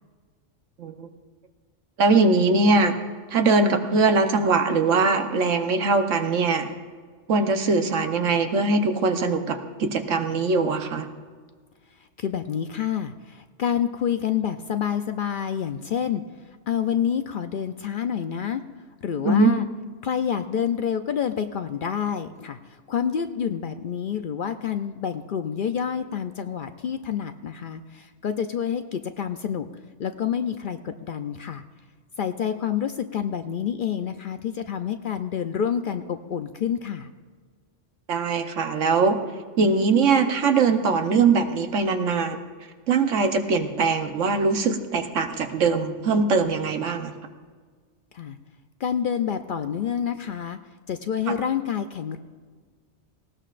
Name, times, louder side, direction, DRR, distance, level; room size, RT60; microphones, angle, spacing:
voice 1, 2.0-3.0 3.3-6.7 7.3-11.1 19.2-19.6 38.1-39.2 39.6-42.4 42.9-47.1 51.3-51.4, right 4 dB, 85° right, 6 dB, 1.3 m, -21 dB
voice 2, 12.2-16.2 16.7-18.6 19.0-19.6 20.0-29.7 30.0-31.6 32.2-37.1 48.1-48.4 48.8-50.6 50.9-52.2, left 8 dB, 60° left, 8 dB, 0.6 m, -28 dB
19.0 x 17.0 x 2.5 m, 1.5 s
omnidirectional pair, 1.2 m